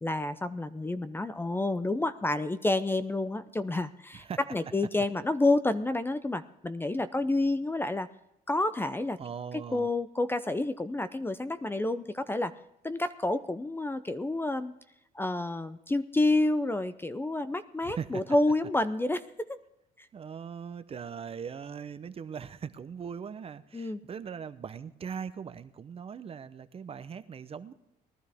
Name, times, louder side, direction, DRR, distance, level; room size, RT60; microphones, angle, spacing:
voice 1, 0.0-8.1 8.5-9.2 9.5-12.5 12.8-14.7 15.1-19.2 23.7-24.0, left 2 dB, 15° left, 12 dB, 0.6 m, -29 dB
voice 2, 9.2-9.9 17.8-18.4 20.1-27.7, right 7 dB, 35° right, 11 dB, 0.7 m, -40 dB
19.5 x 12.0 x 3.5 m, 0.86 s
cardioid pair, 110°, 17 cm